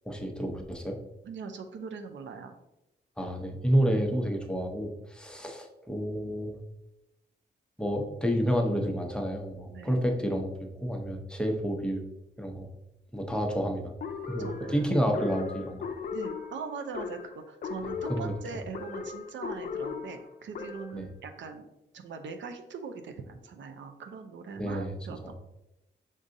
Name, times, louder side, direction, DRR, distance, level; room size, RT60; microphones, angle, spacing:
voice 1, 0.1-1.0 3.2-6.6 7.8-10.5 10.8-12.0 12.4-12.7 13.1-13.9 14.3-15.9 17.8-18.3 20.9-21.1 24.6-24.9, equal, 5° left, 2 dB, 0.6 m, -29 dB
voice 2, 1.2-2.6 9.7-10.0 14.4-14.9 16.1-21.7 21.9-25.3, right 5 dB, 90° right, 6 dB, 0.5 m, -41 dB
sound 1, 14.0-21.1, left 5 dB, 55° left, 0.5 m, -37 dB
5.3 x 3.7 x 2.6 m, 0.92 s
wide cardioid pair, 125°, 19 cm